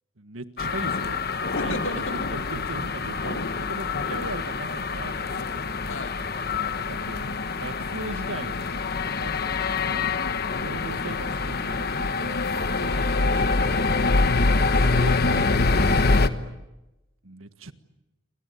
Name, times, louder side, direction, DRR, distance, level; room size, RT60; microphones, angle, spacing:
voice 1, 0.2-1.2 1.5-5.8 6.9-7.3 7.6-10.1 10.6-12.4 12.8-14.0 14.8-15.1 15.6-16.6 17.2-17.7, right 2 dB, 75° right, 10 dB, 1.6 m, -39 dB
sound 1, 0.6-16.3, left 3 dB, 50° left, 1.2 m, -25 dB
voice 2, 1.5-2.2 5.8-6.2 10.2-10.5, left 2 dB, 75° left, 9 dB, 1.7 m, -37 dB
29.0 x 24.5 x 8.4 m, 1.0 s
head